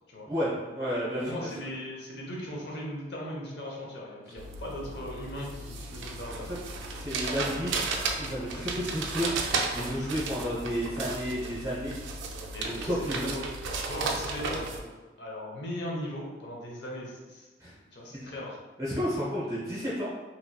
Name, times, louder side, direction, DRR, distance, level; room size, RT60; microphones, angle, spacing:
voice 1, 0.3-1.5 6.9-7.8 8.2-9.3 9.7-11.9 12.6-13.3 17.6-17.7 18.8-20.1, equal, 15° right, -8 dB, 0.6 m, -31 dB
voice 2, 1.2-6.5 12.5-13.4 13.9-14.9 15.2-18.6, left 1 dB, 65° left, -3 dB, 0.7 m, -38 dB
sound 1, 4.4-14.8, right 3 dB, 90° right, 0.4 m, -34 dB
3.0 x 2.9 x 2.2 m, 1.2 s
head